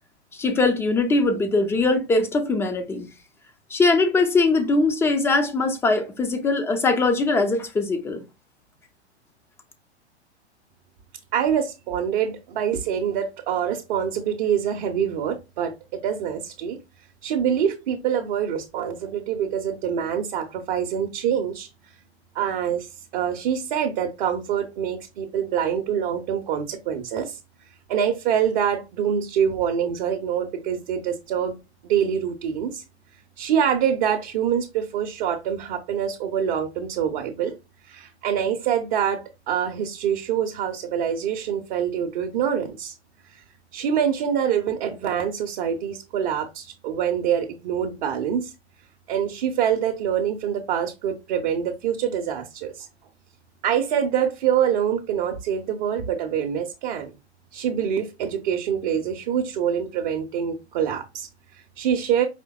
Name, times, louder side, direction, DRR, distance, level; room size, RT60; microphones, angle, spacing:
voice 1, 0.3-3.1 3.7-8.2, left 3 dB, 5° left, 0.4 m, -21 dB
voice 2, 11.3-16.8 17.2-21.7 22.3-27.4 27.9-31.6 31.8-32.8 33.4-37.5 37.8-42.9 43.3-43.4 43.7-48.5 49.1-52.9 53.6-57.1 57.5-62.3, right 8 dB, 45° right, 0.7 m, -25 dB
5.0 x 3.3 x 2.2 m
figure-of-eight pair, 100°, 34 cm